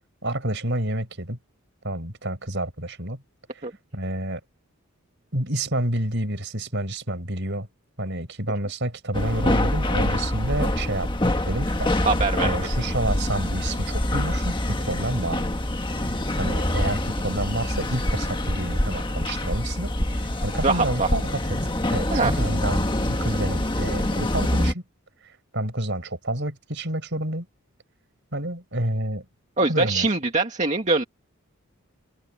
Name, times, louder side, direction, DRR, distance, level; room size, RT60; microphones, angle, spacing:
voice 1, 0.2-1.4 1.8-3.2 3.5-3.7 3.9-4.4 5.3-7.7 8.0-11.9 12.4-15.5 16.4-21.6 21.9-24.8 25.5-27.5 28.3-29.3 29.7-30.1, right 1 dB, 55° right, 6.0 m, -29 dB
sound 1, 9.1-24.7, left 1 dB, 20° left, 1.6 m, -25 dB
voice 2, 12.0-12.5 20.6-21.1 22.1-22.4 29.6-31.0, right 3 dB, 35° right, 2.0 m, -23 dB
head